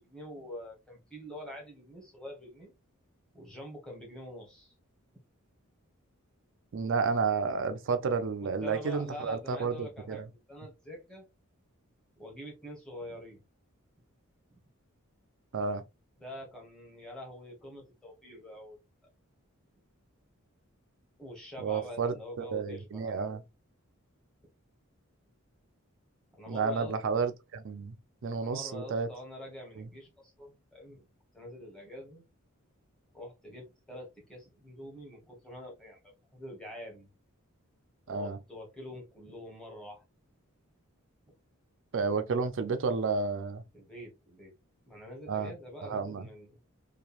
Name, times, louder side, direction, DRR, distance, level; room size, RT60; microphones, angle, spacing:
voice 1, 0.0-2.8 3.3-4.7 8.4-10.2 10.5-11.3 12.2-13.4 16.2-18.8 21.2-23.2 26.4-26.9 28.4-31.1 31.3-32.3 33.1-37.1 38.1-40.0 43.7-44.5 44.9-46.6, left 1 dB, 5° left, 1.0 m, -45 dB
voice 2, 6.7-10.3 15.5-15.8 21.6-23.4 26.5-27.9 28.2-29.1 29.8-29.9 38.1-38.4 41.9-43.6 45.3-45.5 45.8-46.3, right 5 dB, 60° right, 0.4 m, -31 dB
2.9 x 2.3 x 2.4 m
head